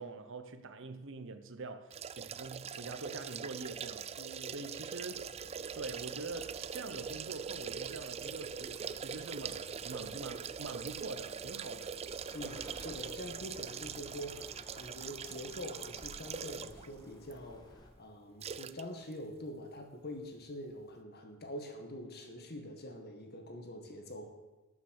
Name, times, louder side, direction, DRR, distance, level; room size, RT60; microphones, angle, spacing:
voice 1, 0.0-4.1 4.5-5.2 5.7-11.9, right 3 dB, 60° right, 0.9 m, -44 dB
sound 1, 1.9-16.9 17.3-17.4 18.4-18.8 19.1-19.2, right 7 dB, 30° right, 0.3 m, -42 dB
voice 2, 4.2-4.5 12.3-24.3, left 1 dB, 50° left, 1.8 m, -45 dB
sound 2, 5.1-17.9, left 1 dB, 20° left, 1.6 m, -56 dB
12.5 x 7.2 x 6.5 m
head